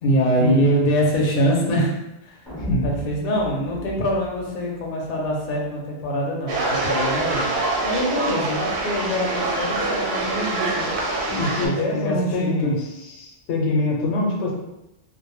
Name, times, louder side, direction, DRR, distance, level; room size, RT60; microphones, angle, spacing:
voice 1, 0.0-1.9 2.2-2.4 2.8-7.5 7.8-10.9 11.6-12.7, equal, 60° left, -2 dB, 0.6 m, -24 dB
sound 1, 2.5-5.6, equal, 5° left, 0.6 m, -36 dB
sound 2, 6.5-11.7, right 2 dB, 65° right, 0.7 m, -25 dB
voice 2, 11.3-12.8 13.2-14.5, left 1 dB, 85° left, -2 dB, 0.9 m, -24 dB
2.1 x 2.0 x 3.0 m, 0.91 s
omnidirectional pair, 1.1 m